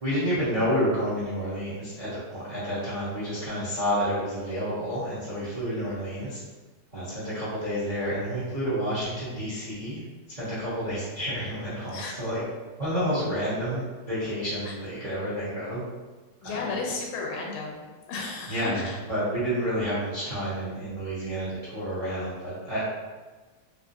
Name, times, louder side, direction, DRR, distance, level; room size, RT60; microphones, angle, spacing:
voice 1, 0.0-6.4 6.9-10.0 10.3-12.4 12.8-15.8 16.4-16.8 18.5-22.8, equal, 80° right, -10 dB, 0.3 m, -29 dB
voice 2, 16.4-17.8 18.1-19.0, left 3 dB, 90° left, 0 dB, 1.5 m, -33 dB
3.2 x 2.9 x 2.6 m, 1.3 s
omnidirectional pair, 2.2 m